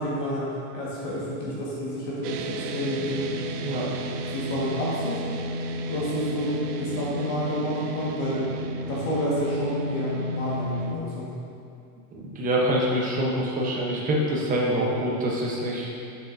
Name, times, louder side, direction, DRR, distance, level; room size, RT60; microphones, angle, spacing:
voice 1, 0.0-3.3 4.3-5.2 5.9-8.5 8.9-11.3, equal, 40° left, -6 dB, 1.6 m, -29 dB
sound 1, 2.2-11.0, right 1 dB, 70° right, 0.6 m, -32 dB
voice 2, 12.1-15.9, equal, 15° right, -3 dB, 0.9 m, -25 dB
7.3 x 7.2 x 2.6 m, 2.5 s
supercardioid pair, 150°, 47 cm